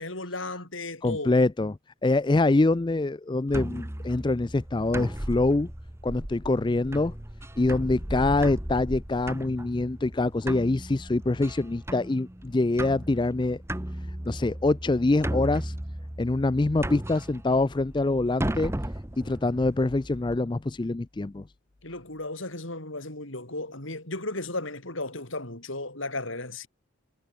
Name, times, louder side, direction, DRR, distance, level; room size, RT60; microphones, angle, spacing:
voice 1, 0.0-1.3 21.8-26.7, left 2 dB, 70° left, 6.7 m, -35 dB
voice 2, 1.0-5.7 6.0-7.1 7.6-13.6 14.3-15.7 16.2-18.7 19.2-21.4, left 2 dB, 20° left, 0.4 m, -25 dB
sound 1, 3.5-20.4, right 1 dB, 10° right, 1.1 m, -36 dB
head